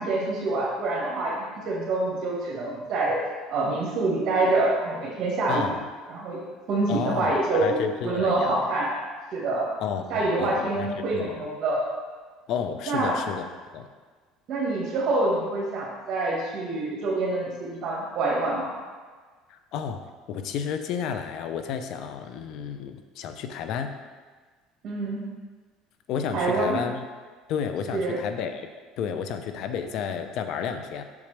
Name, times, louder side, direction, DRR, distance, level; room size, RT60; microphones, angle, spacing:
voice 1, 0.0-1.3 1.6-3.2 3.5-5.7 6.1-7.8 8.0-8.9 9.3-9.7 10.1-11.8 12.9-13.2 14.5-18.7 24.8-25.2 26.3-26.8 27.9-28.2, right 2 dB, 50° right, -6 dB, 1.7 m, -26 dB
voice 2, 5.5-5.9 6.9-8.7 9.8-11.4 12.5-13.4 13.7-13.9 19.5-20.0 20.3-23.9 26.1-27.0 27.5-28.7 29.0-31.0, left 7 dB, 60° left, 7 dB, 0.6 m, -31 dB
7.1 x 6.4 x 3.4 m, 1.5 s
supercardioid pair, 110°, 0 cm